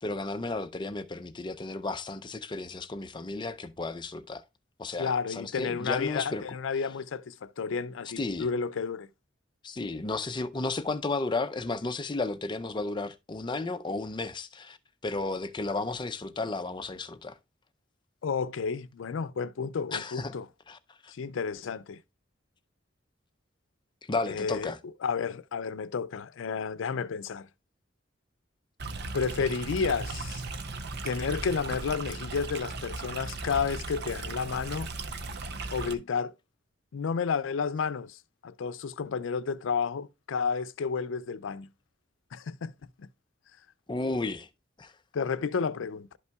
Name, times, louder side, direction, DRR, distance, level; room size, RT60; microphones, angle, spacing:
voice 1, 0.0-4.4 4.8-6.4 8.2-8.5 9.6-14.8 15.0-17.4 19.9-20.3 20.7-20.8 21.0-21.1 24.0-24.8 43.9-44.5 44.8-44.9, left 3 dB, 25° left, 0.5 m, -33 dB
voice 2, 5.0-9.1 18.2-20.4 21.1-22.0 24.3-24.7 25.0-27.5 29.1-30.4 31.0-34.9 35.7-36.3 36.9-41.7 42.3-42.7 43.0-43.1 45.1-46.1, left 5 dB, 85° left, 0.4 m, -31 dB
Stream, 28.8-35.9, right 3 dB, 60° right, 0.7 m, -37 dB
11.5 x 5.5 x 2.3 m
head